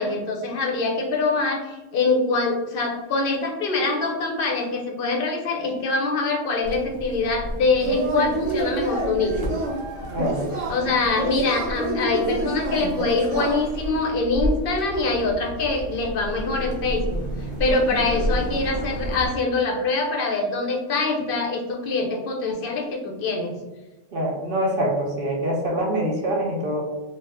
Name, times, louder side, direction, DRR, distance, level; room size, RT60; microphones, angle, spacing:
voice 1, 0.0-9.5 10.7-23.6, left 3 dB, 55° left, 1 dB, 0.7 m, -24 dB
sound 1, 6.6-19.3, right 1 dB, 25° right, 0.9 m, -32 dB
Yell / Cheering, 7.8-13.9, right 2 dB, 75° right, 1.1 m, -29 dB
voice 2, 10.1-10.5 24.1-26.8, right 1 dB, 55° right, -1 dB, 0.7 m, -25 dB
2.7 x 2.3 x 3.3 m, 1.1 s
omnidirectional pair, 1.3 m